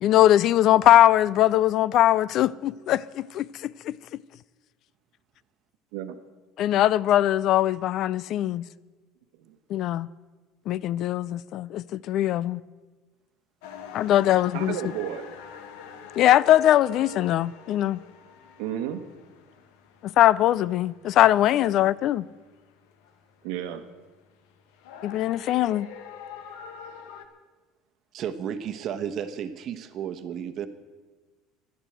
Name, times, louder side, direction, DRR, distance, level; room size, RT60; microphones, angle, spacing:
voice 1, 0.0-3.9 6.6-8.6 9.7-10.1 10.7-12.6 13.9-14.8 16.2-18.0 20.0-22.2 25.0-25.9, left 13 dB, 45° left, 0.3 m, -21 dB
sound 1, 13.6-27.3, left 6 dB, 85° left, 1.4 m, -45 dB
voice 2, 14.2-15.3 18.6-19.0 23.4-23.8, right 10 dB, 80° right, 1.3 m, -32 dB
voice 3, 28.1-30.7, right 8 dB, 40° right, 1.0 m, -33 dB
12.0 x 11.0 x 7.9 m
cardioid pair, 150°, 0 cm